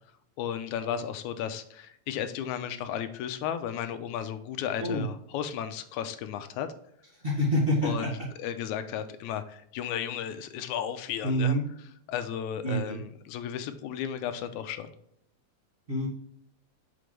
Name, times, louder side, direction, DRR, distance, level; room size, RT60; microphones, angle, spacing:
voice 1, 0.4-6.7 7.8-11.6 12.1-14.9, left 9 dB, 85° left, 10 dB, 2.0 m, -34 dB
voice 2, 7.2-8.3 11.2-11.6 12.6-13.0 15.9-16.1, equal, 25° right, -6 dB, 1.6 m, -27 dB
6.8 x 5.1 x 3.2 m, 0.70 s
omnidirectional pair, 3.3 m